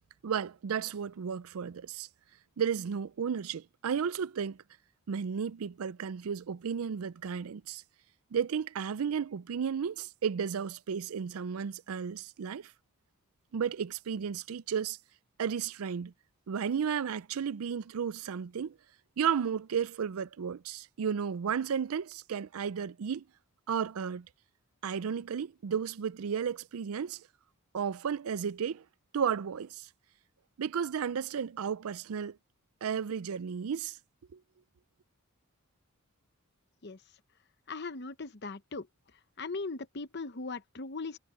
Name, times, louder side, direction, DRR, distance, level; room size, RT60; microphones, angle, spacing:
voice 1, 0.2-2.1 2.6-4.6 5.1-7.8 8.3-12.7 13.5-15.0 15.4-16.1 16.5-18.8 19.2-23.2 23.7-24.3 24.8-27.2 27.7-28.8 29.1-29.9 30.6-32.4 32.8-34.0 34.3-34.4, right 7 dB, 75° right, 0.4 m, -33 dB
voice 2, 37.7-38.9 39.1-41.2, left 3 dB, 50° left, 0.9 m, -39 dB
head